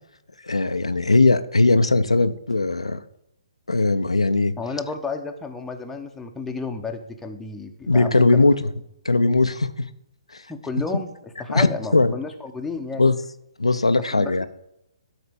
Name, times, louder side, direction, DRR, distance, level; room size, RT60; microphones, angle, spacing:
voice 1, 0.4-3.0 3.7-4.5 7.9-8.7 9.0-9.9 10.3-10.4 11.5-11.7 11.9-12.1 13.0-13.1 13.6-14.5, left 3 dB, 85° left, 9 dB, 0.7 m, -19 dB
voice 2, 4.6-8.4 10.5-13.1 14.1-14.5, left 4 dB, 5° left, 3 dB, 1.0 m, -32 dB
12.5 x 4.3 x 6.9 m, 0.81 s
figure-of-eight pair, 135°, 3 cm